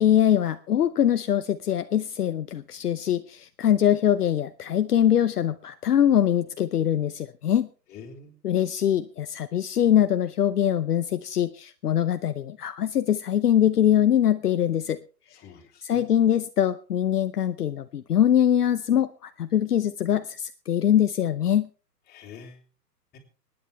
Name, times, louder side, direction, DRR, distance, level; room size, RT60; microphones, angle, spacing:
voice 1, 0.0-7.7 8.4-15.0 15.8-21.7, left 10 dB, 65° left, 11 dB, 0.9 m, -23 dB
voice 2, 7.9-8.3 15.3-16.0 22.1-22.6 23.1-23.2, left 5 dB, 20° left, 0 dB, 3.6 m, -45 dB
25.0 x 10.0 x 3.3 m, 0.36 s
figure-of-eight pair, 130°, 50 cm